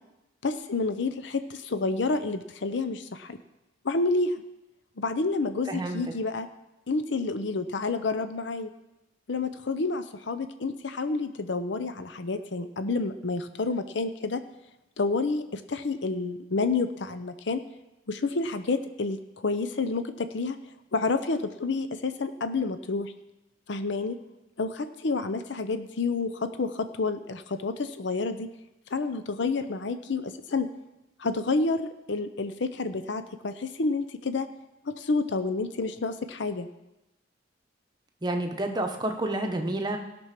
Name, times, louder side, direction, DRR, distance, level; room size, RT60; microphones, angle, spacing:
voice 1, 0.4-3.4 3.8-4.4 5.0-6.5 6.9-8.7 9.3-14.4 15.0-17.6 18.1-20.6 20.9-23.1 23.7-24.2 24.6-28.5 28.9-30.7 31.2-34.5 34.8-36.7, left 3 dB, 60° left, 10 dB, 0.6 m, -29 dB
voice 2, 5.7-6.0 38.2-40.0, right 1 dB, 20° right, 3 dB, 1.0 m, -29 dB
17.0 x 6.1 x 5.9 m, 0.95 s
head